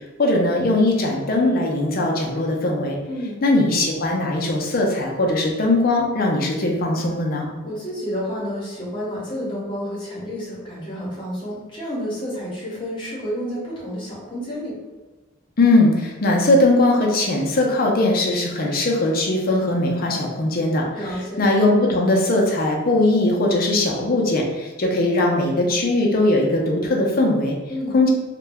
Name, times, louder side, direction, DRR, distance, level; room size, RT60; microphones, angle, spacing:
voice 1, 0.2-3.0 3.4-7.5 15.6-27.6 27.9-28.1, left 2 dB, 50° left, 0 dB, 0.5 m, -20 dB
voice 2, 3.1-3.4 7.6-14.8 20.9-21.4 27.7-28.0, equal, 25° left, -7 dB, 1.0 m, -30 dB
2.3 x 2.0 x 3.4 m, 1.2 s
head